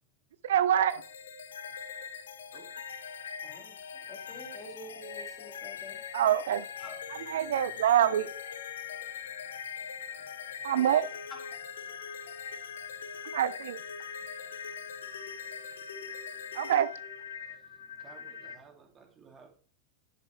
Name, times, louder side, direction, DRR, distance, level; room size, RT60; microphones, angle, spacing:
voice 1, 0.4-1.0 6.1-6.6 7.1-8.3 10.6-11.1 13.3-13.8 16.5-16.9, right 10 dB, 60° right, 0.4 m, -25 dB
sound 1, 0.9-18.6, left 7 dB, 65° left, 0.8 m, -42 dB
voice 2, 3.4-3.8 4.1-6.0 6.8-7.0 11.5-11.6, left 1 dB, 20° left, 3.4 m, -48 dB
voice 3, 18.0-19.5, right 5 dB, 25° right, 2.4 m, -55 dB
10.5 x 7.5 x 3.1 m
figure-of-eight pair, 90°, 0 cm